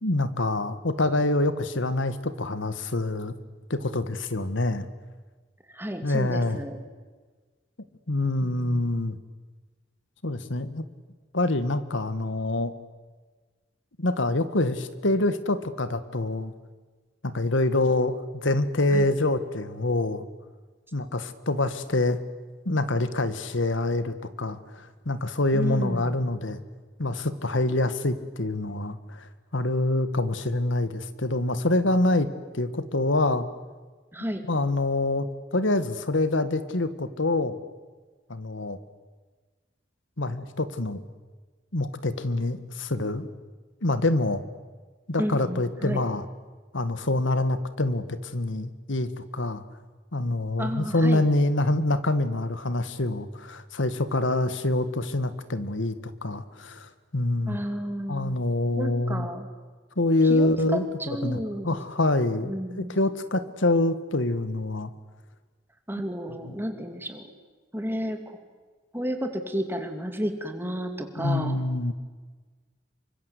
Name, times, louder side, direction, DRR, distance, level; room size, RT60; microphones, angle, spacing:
voice 1, 0.0-3.3 3.7-4.9 6.0-6.6 8.1-9.2 10.2-10.8 11.3-12.7 14.0-16.5 17.2-20.2 20.9-22.2 22.6-26.6 27.0-33.5 34.5-37.6 38.3-38.8 40.2-41.0 41.7-43.3 43.8-44.4 45.1-46.2 46.7-49.6 50.1-55.9 56.2-57.6 58.1-59.3 60.0-64.9 66.4-66.6 71.2-71.9, left 2 dB, 80° left, 12 dB, 1.7 m, -26 dB
voice 2, 5.7-6.8 8.4-8.9 18.9-19.1 25.5-26.2 34.1-34.4 45.2-46.0 50.6-51.2 57.5-58.4 58.8-59.5 60.2-61.8 62.4-63.0 65.9-67.2 67.7-68.4 68.9-71.6, equal, 10° right, 6 dB, 2.6 m, -32 dB
28.0 x 24.5 x 8.3 m, 1.4 s
head